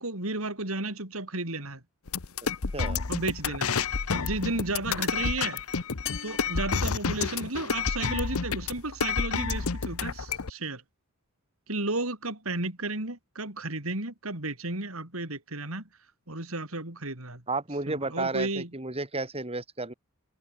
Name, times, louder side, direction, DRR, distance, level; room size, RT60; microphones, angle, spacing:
voice 1, 0.0-1.8 3.1-3.7 4.1-5.6 6.2-10.8 11.7-15.9 16.3-17.4 17.9-18.7, right 2 dB, 70° right, 4.8 m, -33 dB
sound 1, 2.1-10.5, left 5 dB, 85° left, 1.0 m, -29 dB
voice 2, 2.7-3.0 17.5-19.9, right 3 dB, 30° right, 3.0 m, -32 dB
sound 2, 6.1-7.8, left 8 dB, 60° left, 4.3 m, -43 dB
head